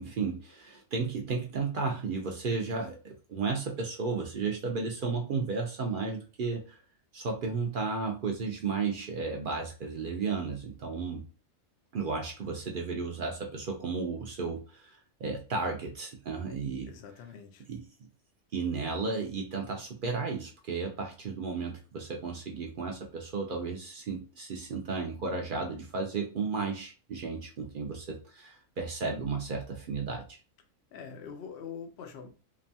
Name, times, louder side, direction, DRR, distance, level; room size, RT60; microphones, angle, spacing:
voice 1, 0.0-6.8 7.1-11.2 11.9-16.9 17.7-17.9 18.5-30.4, right 4 dB, 65° right, 1 dB, 0.5 m, -33 dB
voice 2, 16.9-17.6 30.9-32.3, left 6 dB, 60° left, 5 dB, 0.7 m, -44 dB
2.9 x 2.2 x 2.7 m, 0.35 s
omnidirectional pair, 1.4 m